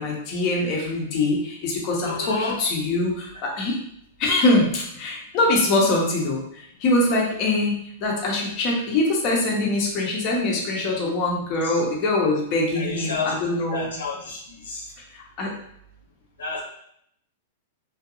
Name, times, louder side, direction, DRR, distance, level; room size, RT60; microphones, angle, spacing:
voice 1, 0.0-3.7 4.2-6.4 6.8-14.0 15.4-15.5, left 2 dB, 45° left, -2 dB, 0.7 m, -23 dB
voice 2, 2.0-2.6 11.6-11.8 12.7-13.3 13.7-14.9 16.4-16.6, left 4 dB, 90° left, -3 dB, 0.7 m, -30 dB
2.5 x 2.2 x 2.7 m, 0.71 s
hypercardioid pair, 115°, 0 cm